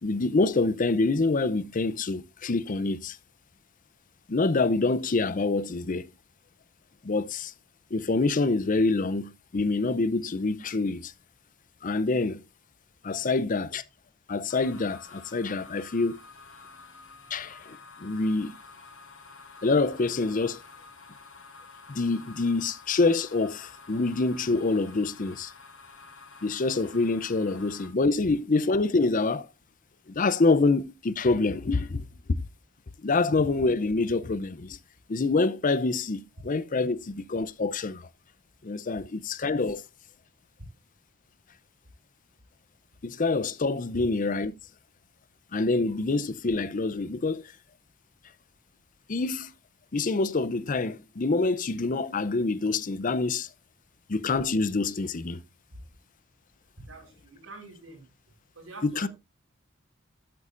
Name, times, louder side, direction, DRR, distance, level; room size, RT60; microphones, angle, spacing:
voice 1, 0.0-3.2 4.3-6.1 7.0-7.5 7.9-11.1 11.8-12.4 13.0-13.8 14.3-16.2 17.3-18.5 19.6-20.6 21.9-25.5 26.4-29.5 30.1-32.1 33.0-34.8 35.1-38.1 38.6-39.8 43.0-44.5 45.5-47.4 49.1-49.5 49.9-53.5 54.1-55.4 58.8-59.1, left 3 dB, 40° left, 0.6 m, -26 dB
sound 1, 14.5-27.9, left 4 dB, 90° left, 4.2 m, -49 dB
voice 2, 56.8-58.0 58.5-59.1, right 2 dB, 80° right, 4.7 m, -46 dB
12.5 x 8.1 x 2.5 m
head